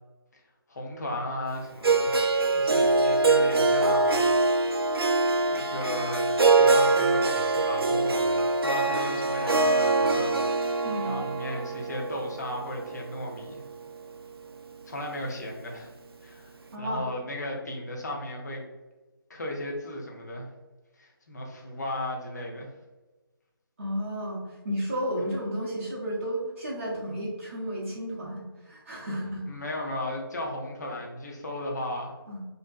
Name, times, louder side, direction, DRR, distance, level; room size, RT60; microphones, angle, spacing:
voice 1, 0.7-2.2 2.5-4.3 4.8-4.9 5.5-6.3 6.5-13.7 14.9-15.9 16.2-16.5 16.8-18.6 19.3-20.5 21.0-22.7 25.2-25.3 29.5-32.1, left 1 dB, 45° left, -1 dB, 0.6 m, -35 dB
Harp, 1.8-14.0, right 3 dB, 80° right, 0.4 m, -24 dB
voice 2, 10.8-11.2 16.7-17.1 23.8-29.6 32.3-32.4, equal, 35° right, -7 dB, 0.6 m, -32 dB
2.5 x 2.1 x 2.4 m, 1.2 s
figure-of-eight pair, 155°, 12 cm